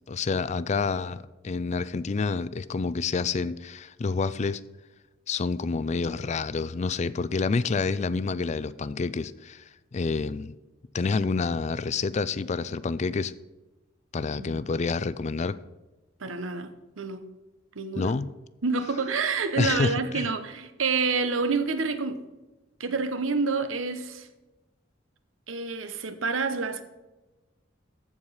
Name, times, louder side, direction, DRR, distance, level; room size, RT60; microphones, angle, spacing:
voice 1, 0.1-4.6 5.3-9.6 9.9-10.5 10.9-13.3 14.1-15.6 18.0-18.3 19.6-20.3, left 4 dB, 35° left, 0.4 m, -28 dB
voice 2, 16.2-17.3 17.7-18.1 18.6-22.2 22.8-24.3 25.5-26.8, right 4 dB, 80° right, 0.9 m, -28 dB
14.5 x 4.9 x 5.6 m
head